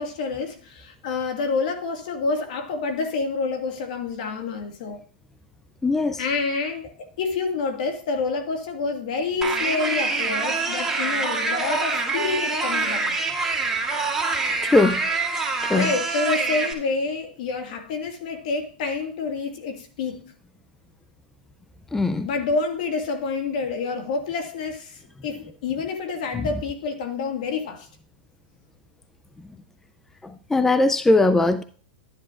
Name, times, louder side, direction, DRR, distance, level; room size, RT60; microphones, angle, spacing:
voice 1, 0.0-5.0 6.2-13.2 15.7-20.3 22.2-27.9, left 4 dB, 65° left, 1.9 m, -28 dB
voice 2, 5.8-6.2 14.6-15.0 15.6-15.9 21.9-22.3 26.4-26.5 30.2-31.6, left 2 dB, 10° left, 0.4 m, -20 dB
sound 1, 9.4-16.7, right 3 dB, 10° right, 2.1 m, -25 dB
12.0 x 10.0 x 2.5 m
hypercardioid pair, 130°, 5 cm